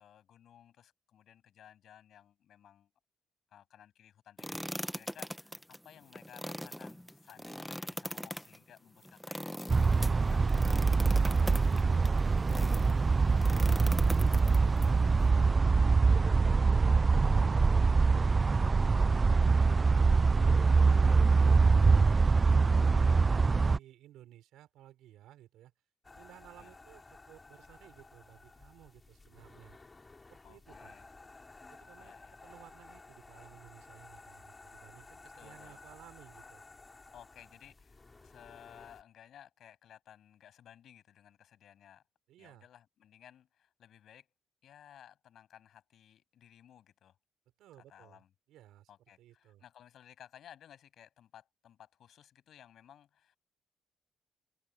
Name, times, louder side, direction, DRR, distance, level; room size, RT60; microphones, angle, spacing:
voice 1, 0.0-2.9 3.5-10.7 11.1-12.1 26.6-26.7 30.4-31.1 32.0-32.3 35.4-35.8 37.1-42.0 42.4-44.3 44.6-47.2 47.9-48.3 48.9-53.4, left 10 dB, 70° left, 8.0 m, -57 dB
sound 1, 4.4-12.9 13.4-14.9, equal, 5° left, 1.2 m, -41 dB
sound 2, 9.7-23.8, right 4 dB, 30° right, 0.4 m, -24 dB
voice 2, 12.5-15.4 16.1-20.6 21.1-25.7 26.1-29.8 30.3-30.9 31.7-32.1 32.4-36.6 42.3-42.7 47.6-48.2 48.5-48.9 49.2-49.6, right 13 dB, 85° right, 6.5 m, -57 dB
sound 3, 26.0-39.0, left 3 dB, 25° left, 5.4 m, -54 dB
open air
cardioid pair, 90°, 0 cm